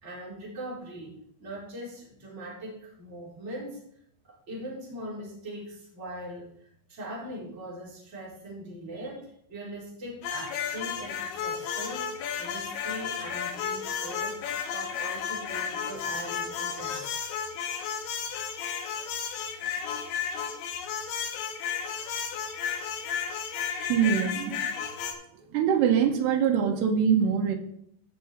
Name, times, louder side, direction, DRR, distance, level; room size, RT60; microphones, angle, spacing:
voice 1, 0.0-3.8 4.2-17.1, right 1 dB, 15° right, -5 dB, 3.7 m, -41 dB
sound 1, 10.2-25.1, left 7 dB, 85° left, 3.6 m, -33 dB
voice 2, 23.9-24.6 25.5-27.6, right 7 dB, 75° right, 4 dB, 3.3 m, -23 dB
15.5 x 6.2 x 4.4 m, 0.71 s
omnidirectional pair, 5.2 m